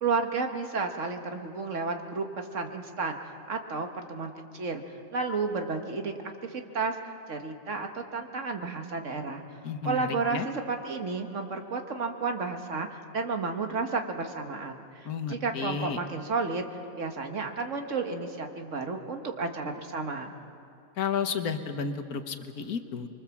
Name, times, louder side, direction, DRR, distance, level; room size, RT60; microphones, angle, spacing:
voice 1, 0.0-4.8 5.1-6.1 6.4-7.0 7.3-9.4 9.8-16.6 17.0-20.3, right 4 dB, 60° right, 5 dB, 1.8 m, -32 dB
voice 2, 9.6-10.5 15.1-16.0 21.0-23.1, left 6 dB, 90° left, 8 dB, 1.7 m, -32 dB
24.5 x 23.5 x 7.2 m, 2.6 s
omnidirectional pair, 1.5 m